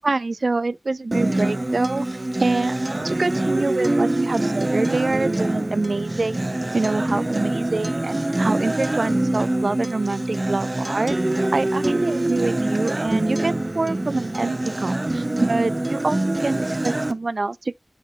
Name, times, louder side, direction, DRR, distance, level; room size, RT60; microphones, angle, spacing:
voice 1, 0.0-2.1 2.4-2.7 3.0-6.4 6.7-11.2 11.5-17.7, right 3 dB, 85° right, 0.3 m, -25 dB
Acoustic guitar, 1.1-17.1, right 1 dB, 45° right, 0.9 m, -24 dB
8.1 x 4.8 x 2.9 m
wide cardioid pair, 45°, 0 cm